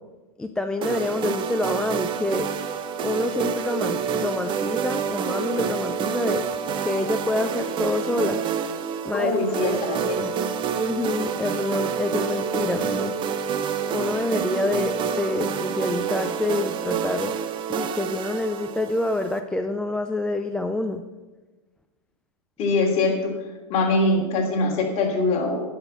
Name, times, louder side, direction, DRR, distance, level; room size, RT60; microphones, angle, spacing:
voice 1, 0.4-2.5 3.0-8.4 9.0-9.3 9.7-9.8 10.0-10.3 10.8-13.1 13.9-17.3 17.7-21.0, left 2 dB, 5° left, 6 dB, 0.3 m, -27 dB
sound 1, 0.8-19.4, right 7 dB, 25° right, 0.7 m, -28 dB
voice 2, 9.1-10.2 22.6-23.1 23.7-25.6, left 2 dB, 35° left, -1 dB, 3.1 m, -22 dB
10.0 x 6.2 x 7.0 m, 1.2 s
hypercardioid pair, 135°, 19 cm